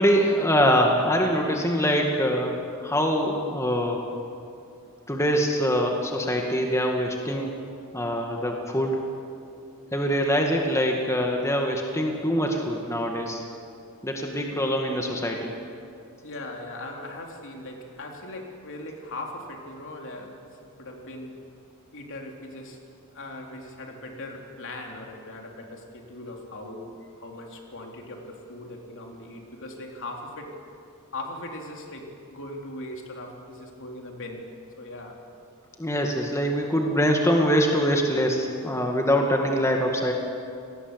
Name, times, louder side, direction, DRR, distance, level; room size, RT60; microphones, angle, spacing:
voice 1, 0.0-4.1 5.1-7.6 7.9-9.1 9.9-13.4 14.0-15.5 35.8-40.1, equal, 15° left, 1 dB, 1.9 m, -24 dB
voice 2, 16.2-20.4 20.7-21.4 21.9-22.8 23.1-30.6 31.1-34.5 34.8-35.2, left 1 dB, 60° left, 1 dB, 3.5 m, -39 dB
28.5 x 19.0 x 8.1 m, 2.5 s
head